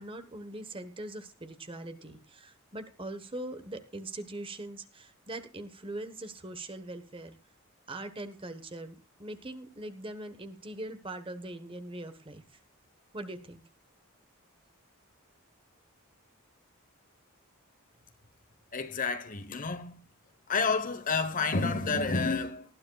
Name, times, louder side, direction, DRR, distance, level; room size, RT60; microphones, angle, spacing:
voice 1, 0.0-7.4 7.9-12.4 13.1-13.6, right 1 dB, 25° right, 1.2 m, -41 dB
voice 2, 18.7-20.0 20.5-22.7, left 4 dB, 40° left, 1.1 m, -30 dB
19.5 x 12.5 x 2.3 m
head